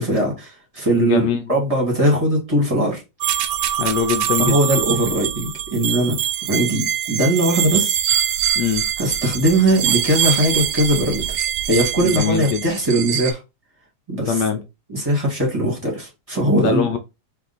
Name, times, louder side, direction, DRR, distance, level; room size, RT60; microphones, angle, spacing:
voice 1, 0.0-3.0 4.4-8.0 9.0-13.4 14.1-14.3 14.9-16.8, right 1 dB, 20° right, 1.6 m, -20 dB
voice 2, 0.9-1.4 3.8-4.6 8.6-8.9 12.0-12.6 14.3-14.6 16.5-17.0, left 7 dB, 75° left, 1.2 m, -22 dB
sound 1, 3.2-13.3, right 10 dB, 75° right, 1.2 m, -23 dB
3.6 x 3.0 x 3.9 m
omnidirectional pair, 2.0 m